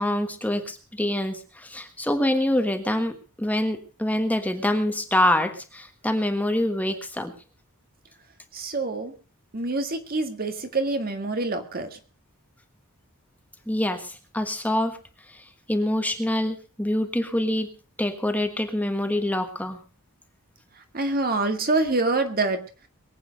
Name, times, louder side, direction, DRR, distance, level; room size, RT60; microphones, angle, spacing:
voice 1, 0.0-7.3 13.7-15.0 15.3-17.7 18.0-19.8, left 1 dB, 5° left, 6 dB, 1.5 m, -25 dB
voice 2, 8.5-9.1 9.5-11.9 20.9-22.6, right 2 dB, 45° right, 7 dB, 1.9 m, -26 dB
22.5 x 8.7 x 5.2 m, 0.37 s
head